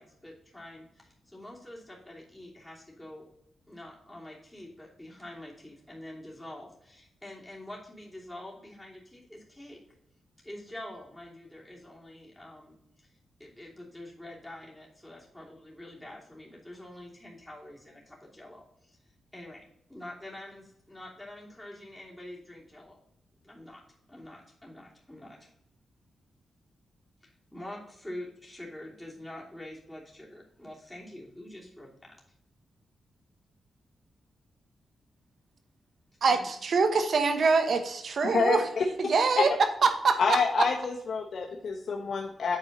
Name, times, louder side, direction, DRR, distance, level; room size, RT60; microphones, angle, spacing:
voice 1, 0.0-3.2 3.7-9.8 10.4-13.1 13.4-19.0 19.3-19.6 19.9-23.0 23.4-23.8 24.1-25.5 27.2-32.1 36.3-36.5, left 1 dB, 10° left, -4 dB, 2.9 m, -46 dB
voice 2, 36.2-38.6 39.0-39.5 39.8-40.2, right 4 dB, 65° right, 8 dB, 1.0 m, -24 dB
voice 3, 38.2-38.9 39.4-39.5 40.2-42.6, left 5 dB, 65° left, 0 dB, 1.0 m, -27 dB
8.7 x 4.3 x 3.9 m, 0.81 s
cardioid pair, 75°, 0 cm